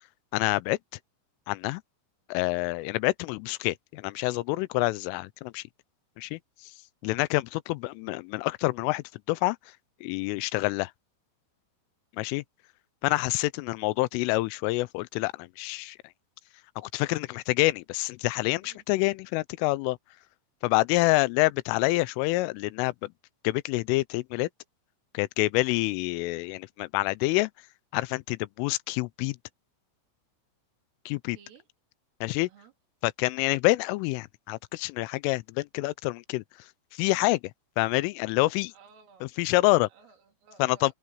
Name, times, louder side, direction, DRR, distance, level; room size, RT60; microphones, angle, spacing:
voice 1, 0.3-0.8 1.5-1.8 2.3-5.6 6.2-6.7 7.0-9.6 10.0-10.9 12.2-12.4 13.0-16.0 16.8-20.0 20.6-23.1 23.4-24.5 25.1-27.5 27.9-29.4 31.1-31.4 32.2-32.5 33.0-36.4 36.9-37.4 37.8-38.7 39.2-39.9 40.6-40.9, left 21 dB, 85° left, 3.2 m, -27 dB
voice 2, 31.3-31.7 32.4-32.7 38.7-39.3 39.9-40.9, right 6 dB, 85° right, 6.2 m, -56 dB
open air
omnidirectional pair, 5.7 m